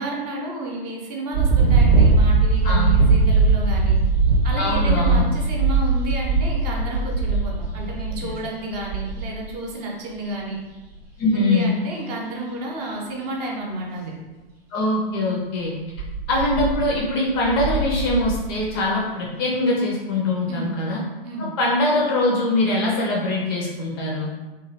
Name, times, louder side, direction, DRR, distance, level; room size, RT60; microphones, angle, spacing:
voice 1, 0.0-4.0 4.4-10.6 11.3-14.1 20.5-20.7 21.2-21.5, right 1 dB, 40° right, -1 dB, 0.7 m, -31 dB
sound 1, 1.3-9.5 10.9-11.0 15.9-17.0 17.3-18.8, right 4 dB, 75° right, 0.9 m, -20 dB
voice 2, 2.6-3.0 4.6-5.3 7.8-7.9 8.2-8.4 11.2-11.7 14.7-15.7 16.3-21.0 21.4-24.3, left 2 dB, 25° left, -2 dB, 0.4 m, -22 dB
2.9 x 2.2 x 2.9 m, 1.1 s
figure-of-eight pair, 105°, 30 cm